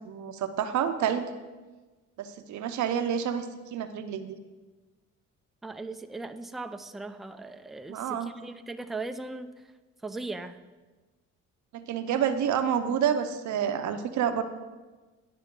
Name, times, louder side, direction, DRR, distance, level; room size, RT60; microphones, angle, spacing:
voice 1, 0.1-1.3 2.2-4.4 7.9-8.3 11.7-14.4, right 8 dB, 70° right, 9 dB, 0.6 m, -28 dB
voice 2, 5.6-9.5 10.0-10.6, right 3 dB, ahead, 9 dB, 0.3 m, -38 dB
10.5 x 5.1 x 3.7 m, 1.3 s
cardioid pair, 90°, 30 cm